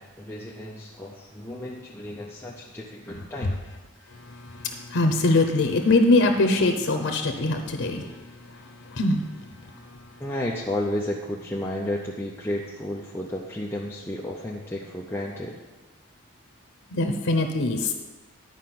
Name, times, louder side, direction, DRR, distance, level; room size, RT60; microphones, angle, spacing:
voice 1, 0.0-3.6 10.2-15.6, left 1 dB, 10° left, -3 dB, 0.6 m, -32 dB
voice 2, 4.5-8.1 8.9-9.2 16.9-17.9, left 2 dB, 90° left, 5 dB, 0.7 m, -22 dB
11.0 x 4.8 x 5.9 m, 1.2 s
head